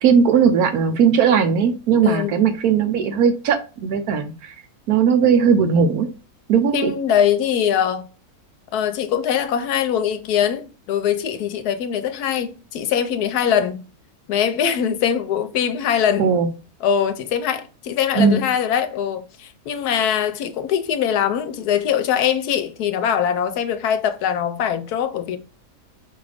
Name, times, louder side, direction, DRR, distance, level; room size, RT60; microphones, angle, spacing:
voice 1, 0.0-4.5 4.9-6.1 6.5-6.9 16.2-16.5 18.1-18.4, right 6 dB, 75° right, 1.2 m, -18 dB
voice 2, 2.0-2.3 6.7-8.1 8.7-13.8 14.3-16.3 16.8-25.4, left 8 dB, 80° left, 1.2 m, -22 dB
4.8 x 2.5 x 3.3 m
omnidirectional pair, 1.6 m